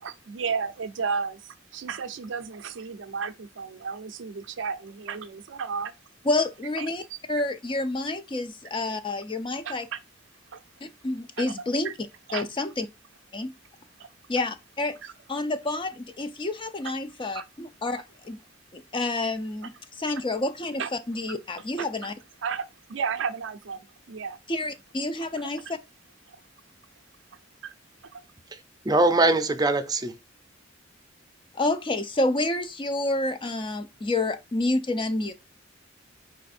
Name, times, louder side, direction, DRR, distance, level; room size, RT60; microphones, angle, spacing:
voice 1, 0.0-5.9 6.8-7.2 9.6-10.0 10.5-10.6 11.4-11.5 11.8-11.9 12.3-12.4 14.0-14.1 15.0-15.1 17.3-17.5 20.8-20.9 21.8-21.9 22.4-24.4 25.2-25.3 26.3-26.4 27.6-27.7 28.1-28.2, right 5 dB, 70° right, 0.5 m, -33 dB
voice 2, 6.3-7.0 7.3-9.9 11.0-11.9 12.3-12.9 13.3-13.5 14.3-15.0 15.3-18.4 18.7-19.7 20.0-22.1 24.5-25.8 31.5-35.3, left 2 dB, 25° left, 0.5 m, -29 dB
voice 3, 28.8-30.2, right 2 dB, 20° right, 0.5 m, -21 dB
4.9 x 2.5 x 4.2 m
head